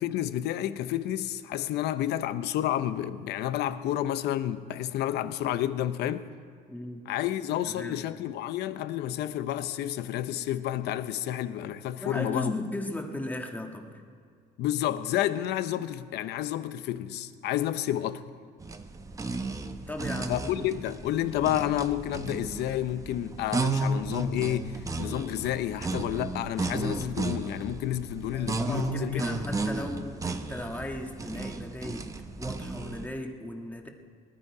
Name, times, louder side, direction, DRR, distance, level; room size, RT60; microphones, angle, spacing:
voice 1, 0.0-6.3 7.1-12.5 14.6-18.2 20.3-24.7 25.0-29.4, left 12 dB, 80° left, 0.7 m, -30 dB
voice 2, 6.7-7.0 7.7-8.0 11.9-13.9 19.9-20.4 28.3-32.1 32.4-33.9, left 1 dB, 10° left, 1.6 m, -36 dB
sound 1, 18.6-33.1, right 3 dB, 20° right, 0.9 m, -33 dB
19.5 x 12.0 x 4.8 m
cardioid pair, 110°, 17 cm